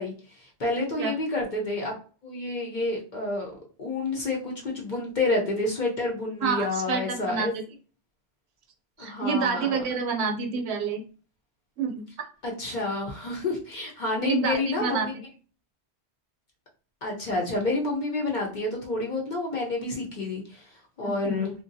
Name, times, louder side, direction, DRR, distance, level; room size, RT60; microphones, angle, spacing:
voice 1, 0.0-1.9 2.2-7.5 9.0-9.8 12.4-15.1 17.0-20.7 21.0-21.5, left 2 dB, 50° left, -1 dB, 0.7 m, -29 dB
voice 2, 6.4-7.6 9.0-11.0 11.8-12.0 14.2-15.1 21.0-21.4, right 5 dB, 75° right, 4 dB, 0.8 m, -28 dB
2.6 x 2.2 x 2.6 m, 0.39 s
omnidirectional pair, 1.2 m